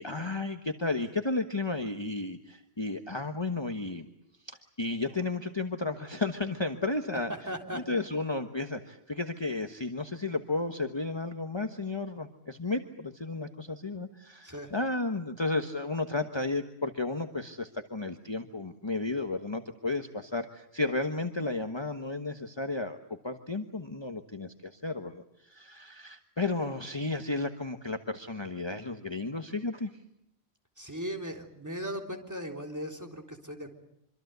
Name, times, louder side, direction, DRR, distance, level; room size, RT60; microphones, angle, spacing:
voice 1, 0.0-4.1 4.4-7.3 7.7-23.0 23.2-29.9, left 3 dB, 25° left, 6 dB, 1.3 m, -33 dB
voice 2, 7.5-8.1 14.4-14.7 30.8-33.7, equal, 15° right, 2 dB, 3.6 m, -38 dB
25.5 x 25.5 x 8.1 m, 0.78 s
omnidirectional pair, 1.1 m